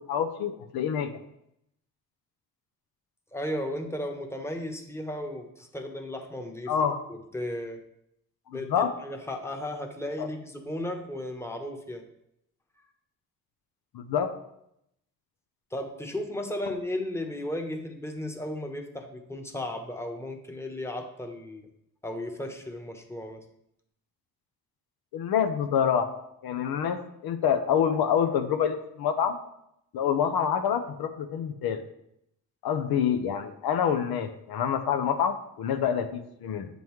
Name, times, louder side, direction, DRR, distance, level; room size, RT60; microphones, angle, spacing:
voice 1, 0.1-1.1 6.7-7.0 8.7-8.9 10.2-10.3 13.9-14.3 25.1-26.1 26.4-29.4 29.9-31.8 32.6-36.7, left 8 dB, 85° left, 7 dB, 0.7 m, -27 dB
voice 2, 3.3-6.7 7.1-7.8 8.5-12.0 15.7-21.7 22.0-23.4, left 1 dB, 5° left, 3 dB, 1.0 m, -35 dB
7.7 x 5.3 x 3.1 m, 0.77 s
cardioid pair, 70°, 36 cm